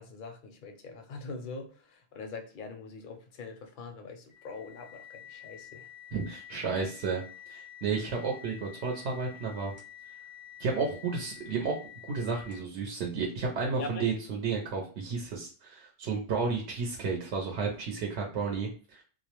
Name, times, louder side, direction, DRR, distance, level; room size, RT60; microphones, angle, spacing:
voice 1, 0.0-5.9 13.8-14.1, left 3 dB, 60° left, 6 dB, 0.6 m, -43 dB
sound 1, 4.3-12.8, left 10 dB, 35° right, 0.8 m, -49 dB
voice 2, 6.1-7.2 7.5-9.7 10.6-11.7 12.1-19.0, right 4 dB, 80° right, 0 dB, 0.9 m, -32 dB
2.3 x 2.0 x 2.9 m, 0.39 s
omnidirectional pair, 1.1 m